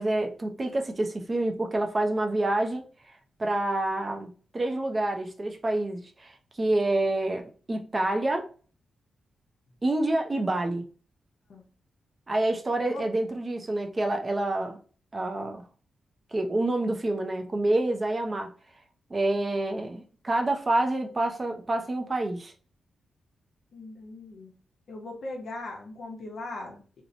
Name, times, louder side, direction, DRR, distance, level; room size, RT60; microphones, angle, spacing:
voice 1, 0.0-2.8 3.4-8.5 9.8-10.8 12.3-14.8 15.1-15.6 16.3-18.5 19.1-22.5, right 2 dB, 25° right, 0.4 m, -27 dB
voice 2, 23.7-24.5 24.9-27.0, left 2 dB, 60° left, 0.7 m, -39 dB
2.7 x 2.0 x 2.6 m
wide cardioid pair, 140°, 0 cm